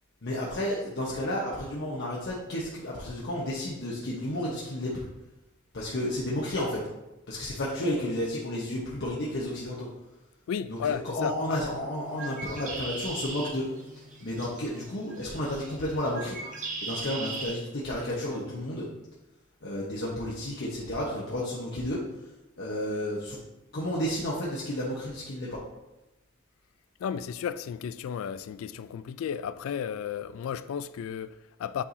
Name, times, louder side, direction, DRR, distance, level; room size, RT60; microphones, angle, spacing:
voice 1, 0.2-5.1 5.7-6.8 7.3-9.9 10.7-13.7 14.2-16.4 16.8-18.9 19.6-22.0 22.6-23.4 23.7-25.6, left 1 dB, 55° left, 1.1 m, -32 dB
voice 2, 10.5-11.6 27.0-31.8, left 8 dB, 70° left, 0.3 m, -33 dB
Bird, 12.0-17.5, right 3 dB, 40° right, 1.3 m, -39 dB
8.5 x 4.7 x 2.7 m
head